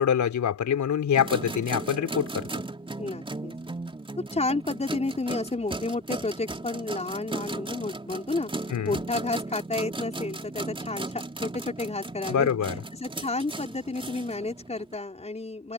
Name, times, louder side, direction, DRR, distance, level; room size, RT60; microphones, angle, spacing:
voice 1, 0.0-2.5 8.7-9.0 12.3-12.7, left 8 dB, 45° left, 4.0 m, -25 dB
sound 1, 1.1-14.9, right 2 dB, 15° right, 3.3 m, -36 dB
voice 2, 3.0-3.5 4.3-8.5 8.8-12.5 13.0-15.7, left 2 dB, 15° left, 5.0 m, -31 dB
figure-of-eight pair, 45°, 40 cm